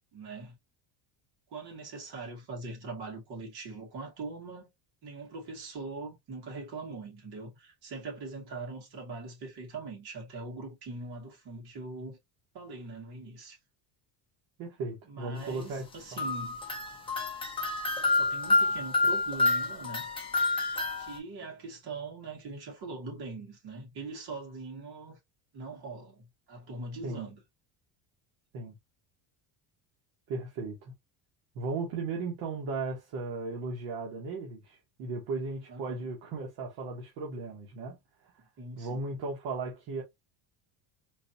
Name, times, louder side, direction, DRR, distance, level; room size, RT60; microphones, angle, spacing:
voice 1, 0.1-0.6 1.5-4.7 5.0-12.2 12.5-13.6 15.1-16.6 18.1-20.1 21.0-25.2 25.5-27.4 35.7-36.1 38.6-39.0, right 3 dB, 55° right, 2.1 m, -42 dB
voice 2, 14.6-15.8 16.1-16.2 27.0-27.3 28.5-28.7 30.3-30.9 31.5-38.3 38.8-40.0, right 3 dB, 70° right, 1.3 m, -36 dB
sound 1, 16.2-21.2, left 3 dB, 10° left, 0.7 m, -28 dB
3.9 x 2.7 x 2.6 m
cardioid pair, 175°, 47 cm